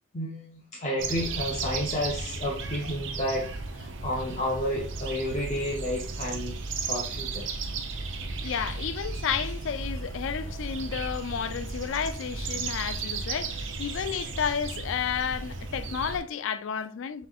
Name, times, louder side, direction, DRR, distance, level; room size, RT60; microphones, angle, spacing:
voice 1, 0.1-3.5 3.7-6.6 6.9-7.5, equal, 35° left, 0.7 m, -31 dB
sound 1, 1.0-16.2, right 4 dB, 70° right, 0.6 m, -35 dB
voice 2, 8.1-17.3, left 7 dB, 80° left, 0.4 m, -32 dB
5.8 x 3.1 x 2.4 m
head